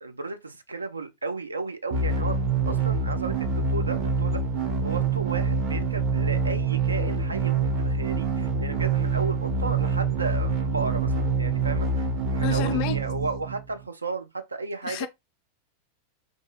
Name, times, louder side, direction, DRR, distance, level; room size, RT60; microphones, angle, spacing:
voice 1, 0.0-2.4 2.7-4.4 4.8-15.1, right 3 dB, 80° right, 0.3 m, -34 dB
sound 1, 1.9-13.8, right 4 dB, 40° right, 0.6 m, -26 dB
voice 2, 12.4-13.0 14.8-15.1, left 14 dB, 45° left, 0.4 m, -29 dB
2.6 x 2.5 x 2.2 m
figure-of-eight pair, 90°, 0 cm